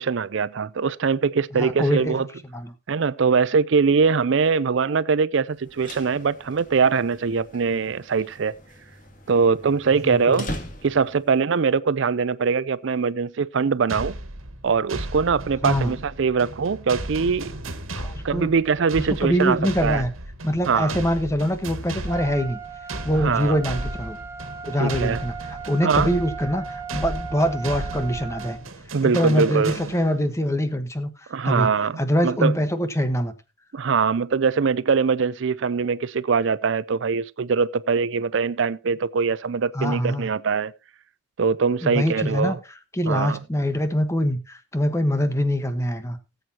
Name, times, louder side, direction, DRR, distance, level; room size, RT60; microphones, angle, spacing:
voice 1, 0.0-2.3 2.9-8.5 9.3-10.5 10.8-14.1 14.6-17.5 18.2-20.0 20.7-20.9 23.2-23.6 24.8-25.2 25.8-26.1 28.9-29.8 31.3-32.6 33.7-40.7 41.4-42.6 43.1-43.4, right 5 dB, 65° right, 0.5 m, -22 dB
voice 2, 1.6-2.1 2.5-2.7 10.0-10.4 15.6-15.9 18.0-18.5 19.0-20.1 20.4-22.6 23.0-24.2 24.6-28.6 29.0-31.1 31.4-31.7 32.0-33.3 39.7-40.3 41.8-42.6 42.9-46.2, equal, 15° left, 1.2 m, -24 dB
sound 1, 5.6-11.3, left 1 dB, 40° left, 2.4 m, -40 dB
sound 2, 13.9-30.3, right 2 dB, 85° right, 1.7 m, -35 dB
Trumpet, 22.1-28.6, right 5 dB, 15° right, 1.4 m, -37 dB
18.5 x 7.9 x 2.8 m
head